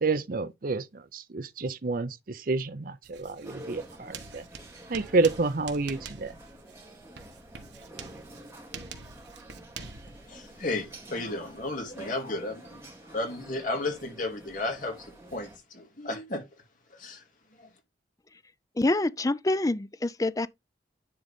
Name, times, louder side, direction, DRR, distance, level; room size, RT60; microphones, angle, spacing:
voice 1, 0.0-4.4 4.9-6.3, right 3 dB, 50° right, 0.6 m, -29 dB
Writing, 3.0-11.7, right 5 dB, 75° right, 1.4 m, -46 dB
sound 1, 3.4-15.6, right 1 dB, 15° right, 2.4 m, -48 dB
voice 2, 10.3-12.8 13.1-16.4 17.0-17.2, left 2 dB, 45° left, 2.4 m, -33 dB
voice 3, 18.8-20.5, left 2 dB, 20° left, 0.4 m, -26 dB
10.5 x 3.9 x 3.6 m
head